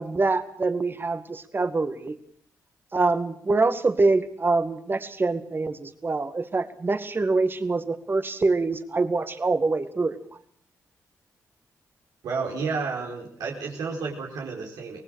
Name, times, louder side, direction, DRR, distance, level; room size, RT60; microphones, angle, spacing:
voice 1, 0.0-2.2 2.9-10.2, right 3 dB, 35° right, 10 dB, 2.0 m, -25 dB
voice 2, 12.2-15.0, right 4 dB, 90° right, -1 dB, 4.6 m, -31 dB
24.5 x 19.0 x 6.5 m, 0.62 s
cardioid pair, 80°, 6 cm